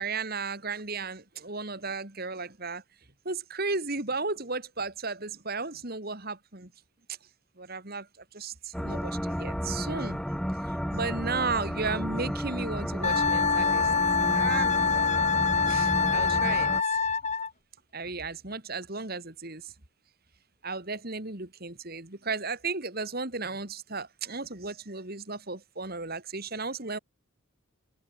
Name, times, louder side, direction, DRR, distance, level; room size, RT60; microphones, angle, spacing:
voice 1, 0.0-2.8 3.2-6.7 7.6-8.1 8.3-10.2 10.9-13.9 14.3-14.9 15.7-16.7 17.9-19.7 20.6-27.0, right 4 dB, 45° right, 2.6 m, -34 dB
sound 1, 8.7-16.8, equal, ahead, 3.7 m, -32 dB
Wind instrument woodwind instrument, 13.0-17.5, left 5 dB, 30° left, 4.0 m, -25 dB
head